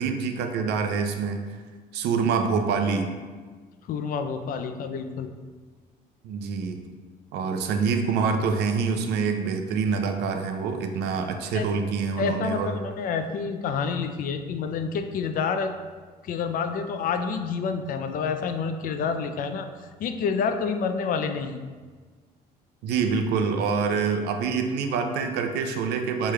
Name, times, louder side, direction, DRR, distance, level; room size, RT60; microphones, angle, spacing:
voice 1, 0.0-1.4 1.9-3.1 6.2-6.8 7.3-12.8 22.8-26.3, right 5 dB, 80° right, 6 dB, 0.5 m, -26 dB
voice 2, 3.9-5.3 11.5-11.7 12.2-15.7 16.2-19.7 20.0-21.6, left 5 dB, 55° left, 7 dB, 0.4 m, -28 dB
6.1 x 3.2 x 2.3 m, 1.5 s
cardioid pair, 110°, 17 cm